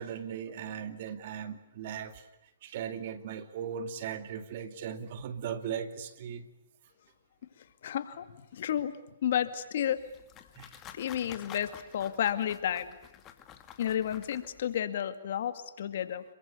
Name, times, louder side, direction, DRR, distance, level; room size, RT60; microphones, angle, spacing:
voice 1, 0.0-6.5 10.6-10.8, right 8 dB, 50° right, 10 dB, 2.4 m, -38 dB
voice 2, 7.8-8.3 8.5-8.9 9.2-10.0 10.9-12.9 13.8-16.2, left 10 dB, 60° left, 10 dB, 2.3 m, -31 dB
sound 1, 9.8-14.8, left 10 dB, 25° left, 2.5 m, -50 dB
27.5 x 23.5 x 8.3 m, 0.89 s
hypercardioid pair, 135°, 0 cm